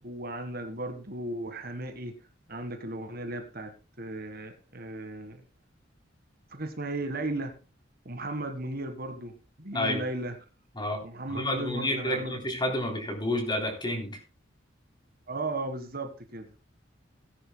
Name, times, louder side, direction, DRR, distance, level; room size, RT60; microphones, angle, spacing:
voice 1, 0.0-2.2 2.5-5.4 6.5-7.6 8.0-10.4 11.0-12.4 15.3-16.5, right 2 dB, 50° right, 8 dB, 1.7 m, -36 dB
voice 2, 11.3-14.2, left 1 dB, 25° left, 3 dB, 3.4 m, -30 dB
18.0 x 10.0 x 2.3 m, 0.32 s
head